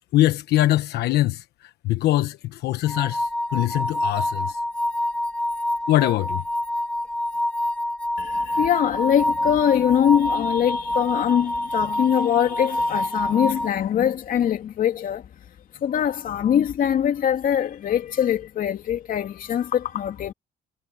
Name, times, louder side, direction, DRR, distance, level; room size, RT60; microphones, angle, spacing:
voice 1, 0.1-1.4 1.8-4.6 5.9-6.4, left 15 dB, 75° left, 1.1 m, -22 dB
sound 1, 2.9-13.7, left 1 dB, 5° left, 1.6 m, -26 dB
voice 2, 8.2-15.2 15.7-20.3, left 9 dB, 55° left, 2.8 m, -22 dB
cardioid pair, 110°, 17 cm